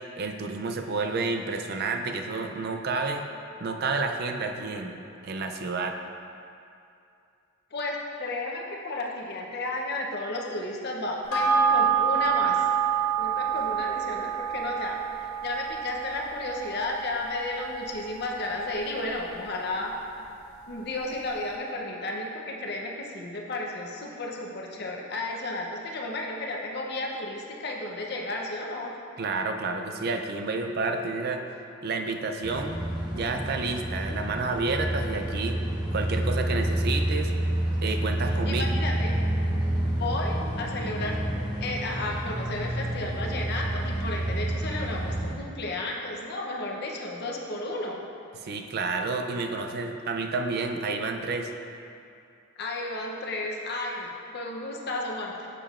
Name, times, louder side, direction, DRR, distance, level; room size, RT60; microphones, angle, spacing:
voice 1, 0.2-3.2 3.6-5.0 5.2-6.0 29.2-31.4 31.8-32.8 33.1-35.6 35.9-37.3 37.8-38.7 48.4-51.5, right 3 dB, 50° right, 5 dB, 0.4 m, -30 dB
voice 2, 7.7-12.7 13.2-19.9 20.7-28.9 38.3-39.2 39.8-41.2 41.6-48.0 52.6-55.5, left 2 dB, 50° left, 0 dB, 0.7 m, -33 dB
sound 1, 11.3-20.1 20.4-20.5, right 7 dB, 85° left, 0.9 m, -28 dB
sound 2, 32.4-45.3, right 1 dB, 20° right, 0.8 m, -29 dB
7.4 x 6.7 x 2.4 m, 2.6 s
head